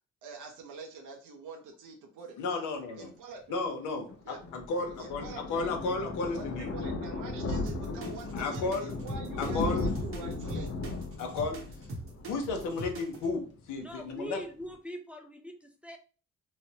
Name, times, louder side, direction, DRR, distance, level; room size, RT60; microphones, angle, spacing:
voice 1, 0.2-2.4 2.9-3.6 4.2-4.4 5.0-5.6 6.3-10.7, right 4 dB, 85° right, 3 dB, 0.7 m, -45 dB
voice 2, 2.4-3.1 3.5-6.7 8.3-8.9 9.4-9.8 11.2-11.6 12.2-14.4, left 3 dB, 85° left, 3 dB, 0.8 m, -33 dB
Thunder, 4.1-13.5 13.8-14.0 14.3-14.4 14.6-14.7, left 2 dB, 50° left, 0.7 m, -36 dB
sound 1, 7.7-13.3, right 2 dB, 45° right, 0.8 m, -41 dB
voice 3, 13.8-16.0, equal, 5° right, 3 dB, 0.4 m, -42 dB
3.2 x 2.0 x 2.7 m, 0.37 s
cardioid pair, 90°, 30 cm